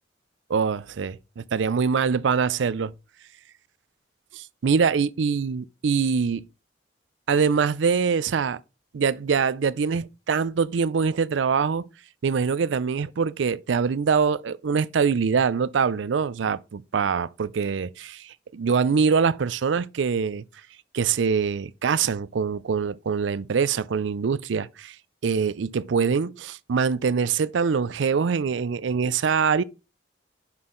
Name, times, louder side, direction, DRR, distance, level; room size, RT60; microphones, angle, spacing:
voice 1, 0.5-2.9 4.3-6.5 7.3-8.6 8.9-11.9 12.2-20.4 20.9-25.0 25.2-29.6, right 6 dB, 80° right, 0.4 m, -24 dB
6.1 x 5.6 x 3.8 m
head